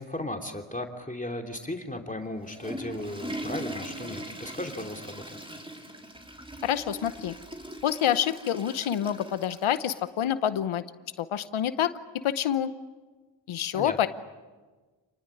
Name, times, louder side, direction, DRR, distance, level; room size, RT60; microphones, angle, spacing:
voice 1, 0.0-5.4 13.7-14.1, left 1 dB, 15° left, 3 dB, 2.8 m, -36 dB
Water / Toilet flush, 2.2-10.1, right 1 dB, 10° right, 3.8 m, -40 dB
voice 2, 6.6-7.4 7.8-10.8 11.2-11.9 12.2-12.7 13.5-14.1, left 10 dB, 90° left, 13 dB, 0.9 m, -27 dB
28.0 x 20.0 x 9.9 m, 1.3 s
cardioid pair, 50°, 48 cm